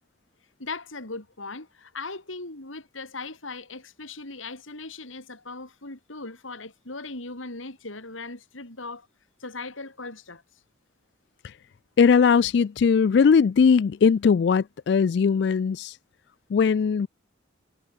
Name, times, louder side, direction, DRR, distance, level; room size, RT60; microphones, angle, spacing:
voice 1, 0.6-9.1 9.4-10.4, left 3 dB, 90° left, 4.3 m, -38 dB
voice 2, 12.0-16.0 16.5-17.1, left 6 dB, 60° left, 0.3 m, -19 dB
head